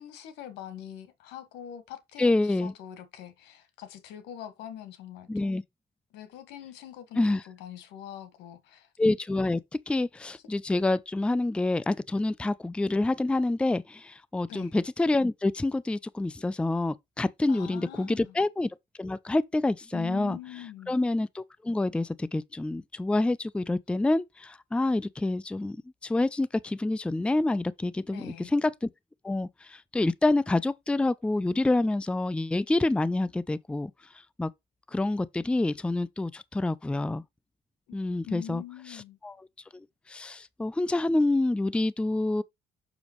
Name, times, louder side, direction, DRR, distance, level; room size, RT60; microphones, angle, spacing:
voice 1, 0.0-5.5 6.1-8.9 14.5-14.7 17.5-18.3 19.9-20.9 28.1-28.5 37.9-38.0 38.2-39.2, left 10 dB, 90° left, 1.7 m, -43 dB
voice 2, 2.2-2.7 5.3-5.6 7.2-7.4 9.0-9.6 9.9-18.7 19.0-20.4 20.9-25.8 26.0-28.9 29.2-33.9 34.4-34.5 34.9-37.2 37.9-38.6 38.9-39.4 39.7-42.4, left 2 dB, 5° left, 0.4 m, -27 dB
7.0 x 6.3 x 3.1 m
cardioid pair, 110°, 17 cm